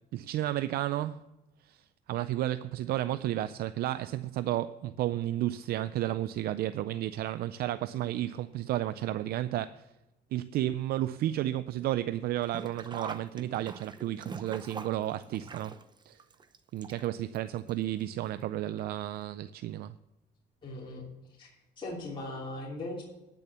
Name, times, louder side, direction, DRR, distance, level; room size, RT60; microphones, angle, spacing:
voice 1, 0.1-1.2 1.6-9.9 10.3-15.7 16.1-16.2 16.7-19.9, right 13 dB, 65° right, 0.4 m, -32 dB
Sink (filling or washing), 12.4-17.4 17.7-17.8 18.8-18.9 19.2-19.3, right 5 dB, 25° right, 0.8 m, -43 dB
voice 2, 20.6-21.1 21.4-21.5 21.8-23.0, left 2 dB, 30° left, 2.9 m, -38 dB
10.0 x 6.9 x 6.9 m
cardioid pair, 110°, 17 cm